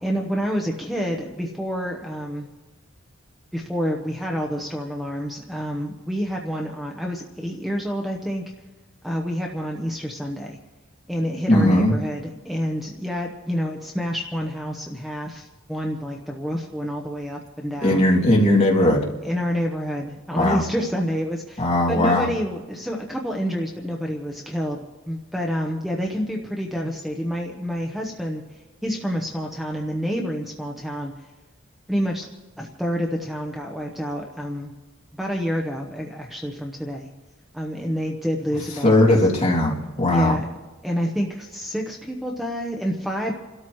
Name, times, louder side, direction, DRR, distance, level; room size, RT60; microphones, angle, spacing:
voice 1, 0.0-2.5 3.5-8.4 9.0-10.6 11.1-18.0 19.2-31.3 31.9-32.3 32.6-34.7 35.2-37.1 37.5-39.0 40.1-40.5 40.8-43.3, equal, ahead, 0 dB, 0.9 m, -28 dB
voice 2, 11.5-11.9 17.8-19.0 20.3-20.6 21.6-22.3 38.8-40.3, left 1 dB, 30° left, -3 dB, 2.6 m, -18 dB
29.5 x 13.0 x 3.2 m, 1.2 s
head